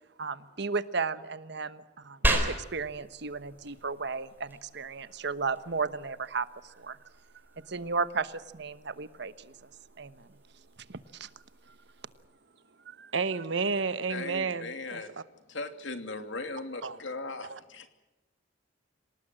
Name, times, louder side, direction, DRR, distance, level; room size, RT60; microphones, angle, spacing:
voice 1, 0.2-7.0 7.6-9.5 10.0-10.3 10.9-11.3 12.9-13.1, right 4 dB, 65° right, 1.2 m, -34 dB
sound 1, 2.2-12.2, right 1 dB, 10° right, 4.0 m, -37 dB
voice 2, 13.1-15.0 16.8-17.0 17.5-17.6, right 4 dB, 90° right, 1.3 m, -31 dB
voice 3, 14.1-15.2 15.5-17.9, left 3 dB, 70° left, 2.7 m, -38 dB
26.5 x 18.5 x 7.7 m
head